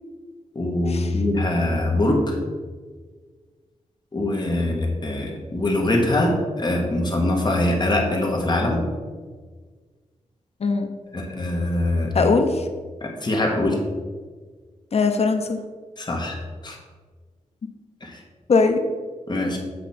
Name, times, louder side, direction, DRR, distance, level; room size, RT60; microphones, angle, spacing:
voice 1, 0.5-2.4 4.1-8.8 11.1-12.3 13.0-13.8 16.0-16.4 16.6-16.8 18.0-18.2 19.3-19.6, left 1 dB, 35° left, 1 dB, 1.4 m, -23 dB
voice 2, 12.1-12.6 14.9-15.6 18.5-18.8, left 4 dB, 55° left, 6 dB, 0.7 m, -20 dB
8.2 x 5.1 x 4.3 m, 1.5 s
wide cardioid pair, 135°, 13 cm